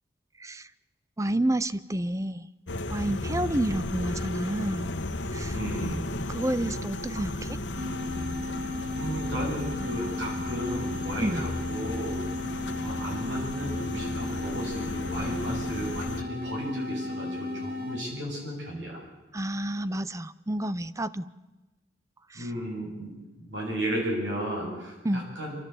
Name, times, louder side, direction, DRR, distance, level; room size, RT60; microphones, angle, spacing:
voice 1, 1.2-2.5 2.9-4.9 5.3-5.5 6.3-7.6 11.2-11.4 19.3-21.3 22.3-22.5 25.0-25.2, right 1 dB, 15° right, 16 dB, 0.6 m, -29 dB
sound 1, 2.7-16.2, left 1 dB, 80° left, 1.4 m, -34 dB
voice 2, 5.5-6.1 8.9-12.2 12.8-19.0 22.3-23.1 23.4-25.6, equal, 85° right, -1 dB, 7.3 m, -34 dB
sound 2, 7.7-18.1, left 2 dB, 55° right, 3.6 m, -35 dB
28.0 x 13.5 x 8.3 m, 1.1 s
head